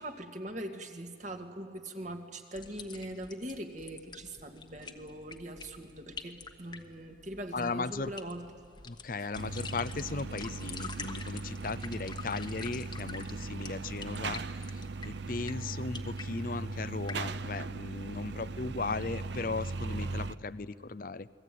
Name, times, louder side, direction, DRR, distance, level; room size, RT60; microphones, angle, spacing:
voice 1, 0.0-8.4, right 1 dB, 40° right, 5 dB, 2.1 m, -41 dB
sound 1, 2.5-17.3, left 5 dB, 25° left, 1.3 m, -48 dB
voice 2, 7.5-8.1 8.9-21.3, left 3 dB, 50° left, 16 dB, 0.6 m, -37 dB
sound 2, 9.3-20.4, right 3 dB, 70° right, 0.6 m, -38 dB
29.0 x 21.5 x 9.3 m, 2.2 s
head